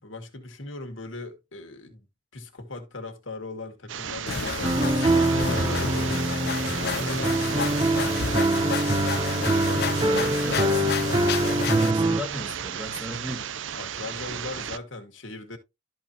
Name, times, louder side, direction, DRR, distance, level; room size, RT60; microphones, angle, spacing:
voice 1, 0.0-2.1 2.3-6.4 6.8-8.7 9.5-10.4 13.7-15.6, left 2 dB, 80° left, 2.2 m, -39 dB
sound 1, 3.9-14.8, right 8 dB, 75° right, 0.6 m, -34 dB
sound 2, 4.3-11.9, left 6 dB, 55° left, 0.5 m, -31 dB
sound 3, 4.6-12.2, right 1 dB, 25° right, 0.8 m, -24 dB
voice 2, 10.0-11.2 11.5-13.5, equal, 5° right, 1.8 m, -36 dB
13.0 x 4.8 x 2.9 m
head